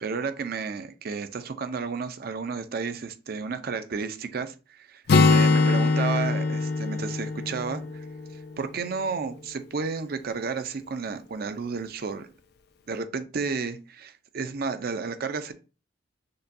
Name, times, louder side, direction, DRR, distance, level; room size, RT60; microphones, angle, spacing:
voice 1, 0.0-8.0 8.6-12.3 12.9-15.5, right 5 dB, 55° right, 0.5 m, -32 dB
Acoustic guitar, 5.1-8.8, left 3 dB, 55° left, 0.4 m, -23 dB
6.5 x 2.2 x 2.6 m
head